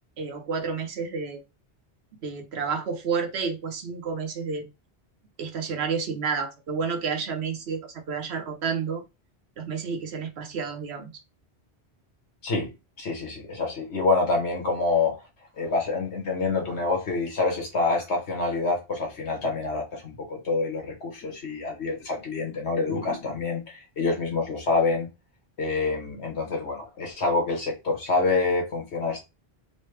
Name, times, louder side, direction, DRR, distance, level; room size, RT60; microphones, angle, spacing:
voice 1, 0.2-1.4 2.2-4.7 5.4-9.0 9.6-11.1, right 5 dB, 75° right, 1.0 m, -30 dB
voice 2, 13.0-15.2 15.6-25.1 25.6-29.2, left 3 dB, 80° left, 1.5 m, -27 dB
4.1 x 2.2 x 3.2 m
omnidirectional pair, 1.1 m